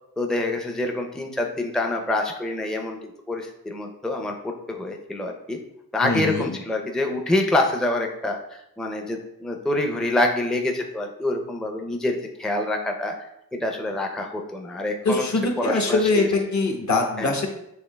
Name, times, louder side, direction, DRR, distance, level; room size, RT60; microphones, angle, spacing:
voice 1, 0.2-5.6 5.9-15.2 15.6-16.3 17.2-17.3, left 1 dB, ahead, 3 dB, 0.5 m, -26 dB
voice 2, 6.0-6.5 15.0-17.5, left 3 dB, 50° left, 3 dB, 1.0 m, -23 dB
6.5 x 2.7 x 2.2 m, 0.81 s
supercardioid pair, 45°, 36 cm